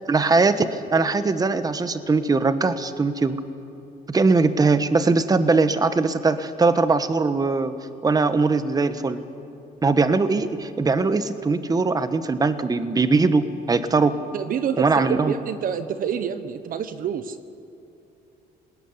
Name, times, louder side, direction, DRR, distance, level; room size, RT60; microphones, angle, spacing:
voice 1, 0.1-3.4 4.1-7.7 8.0-9.2 9.8-14.2 14.8-15.3, right 3 dB, 20° right, 11 dB, 1.4 m, -21 dB
voice 2, 14.3-17.4, right 8 dB, 55° right, 12 dB, 1.2 m, -28 dB
26.5 x 19.5 x 9.8 m, 2.9 s
cardioid pair, 110°, 17 cm